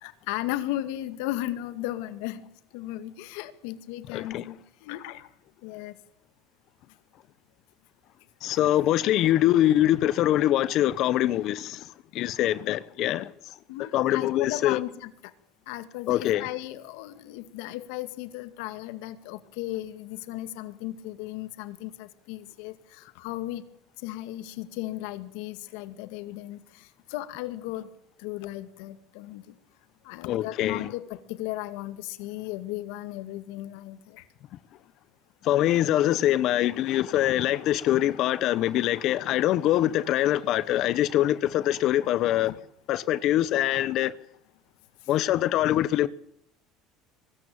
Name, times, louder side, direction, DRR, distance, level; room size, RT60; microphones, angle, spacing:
voice 1, 0.0-5.3 5.6-6.0 13.7-15.3 15.7-23.6 24.0-27.9 28.2-29.5 30.0-34.2, left 15 dB, 80° left, 2.1 m, -36 dB
voice 2, 4.1-4.4 8.4-13.5 13.9-14.8 16.1-16.5 30.3-30.9 35.4-42.5 42.9-44.2 45.1-46.1, left 13 dB, 60° left, 1.1 m, -24 dB
23.5 x 14.5 x 9.0 m
supercardioid pair, 105°, 0 cm